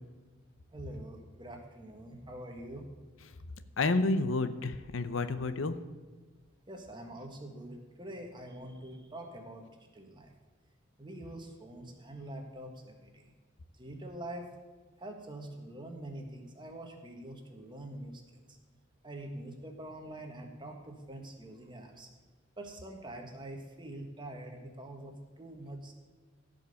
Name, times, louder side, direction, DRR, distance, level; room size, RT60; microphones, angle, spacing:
voice 1, 0.7-2.8 6.7-9.6 9.9-10.3 11.0-13.2 13.8-14.5 15.0-18.4 19.0-22.1 22.6-25.9, right 1 dB, 25° right, 3 dB, 1.5 m, -45 dB
voice 2, 3.8-5.8, left 3 dB, 70° left, 11 dB, 0.7 m, -30 dB
15.5 x 5.3 x 6.8 m, 1.4 s
head